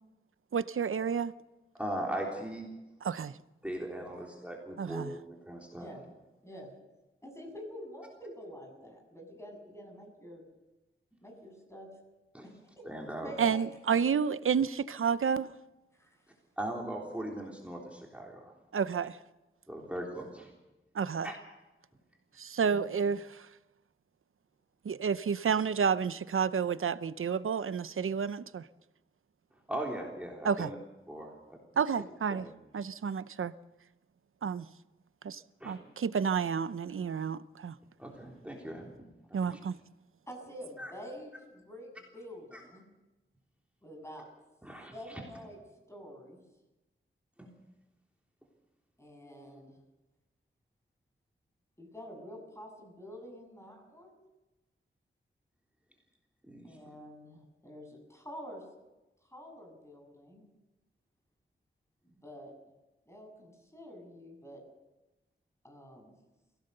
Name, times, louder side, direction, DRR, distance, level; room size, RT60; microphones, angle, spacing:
voice 1, 0.5-1.3 3.0-3.3 4.8-5.1 13.4-15.5 18.7-19.2 20.9-21.3 22.4-23.5 24.8-28.6 30.4-30.7 31.8-32.5 32.7-33.5 34.4-34.7 35.2-37.7 39.3-39.8, right 6 dB, 80° right, 0.7 m, -30 dB
voice 2, 1.7-2.7 3.6-5.9 12.3-12.5 12.8-13.3 16.6-18.5 19.7-20.5 21.2-21.4 29.7-30.8 31.1-31.6 32.3-32.5 35.6-35.8 38.0-39.0 39.4-39.6 40.8-40.9 42.5-42.6 44.6-45.2 47.4-47.5 49.3-49.6 56.4-56.8, right 1 dB, 5° right, 3.4 m, -39 dB
voice 3, 7.2-10.4 11.2-11.9 12.4-12.8 13.2-13.6 15.9-16.2 19.9-20.0 22.7-22.9 40.3-41.9 42.1-42.8 43.8-44.3 44.9-45.6 45.9-46.4 49.0-49.8 51.8-54.2 56.6-58.6 59.3-60.4 62.0-62.5 63.1-64.6 65.6-66.1, equal, 15° left, 7.4 m, -47 dB
22.5 x 17.0 x 6.8 m
wide cardioid pair, 75°, 21 cm